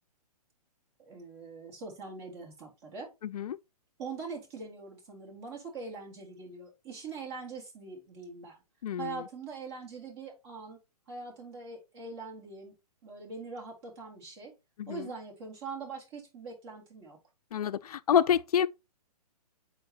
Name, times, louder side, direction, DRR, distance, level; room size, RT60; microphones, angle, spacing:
voice 1, 1.0-3.1 4.0-8.6 9.0-10.8 11.1-12.7 13.0-14.6 14.9-17.2, right 4 dB, 40° right, 3.7 m, -43 dB
voice 2, 3.2-3.6 8.8-9.2 14.8-15.1 17.5-18.7, left 9 dB, 70° left, 0.4 m, -27 dB
8.6 x 4.1 x 2.8 m
hypercardioid pair, 130°, 20 cm